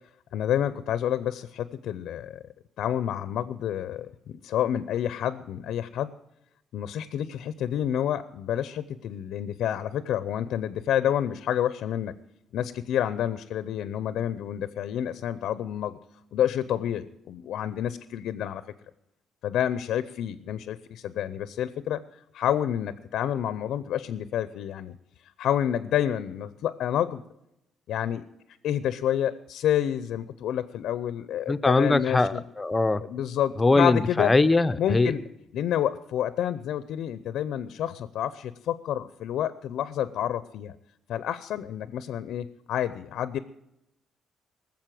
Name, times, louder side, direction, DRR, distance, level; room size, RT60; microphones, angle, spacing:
voice 1, 0.3-2.4 2.8-6.1 6.7-12.1 12.5-16.0 16.3-18.6 19.4-22.0 22.3-24.9 25.4-27.2 27.9-28.2 28.6-32.4 33.0-34.3 34.8-35.2 35.5-40.7 41.1-43.4, left 10 dB, 80° left, 14 dB, 0.6 m, -29 dB
voice 2, 31.5-33.0 33.6-35.1, left 3 dB, 20° left, 12 dB, 0.7 m, -22 dB
19.5 x 7.3 x 7.6 m, 0.83 s
cardioid pair, 90°, 0 cm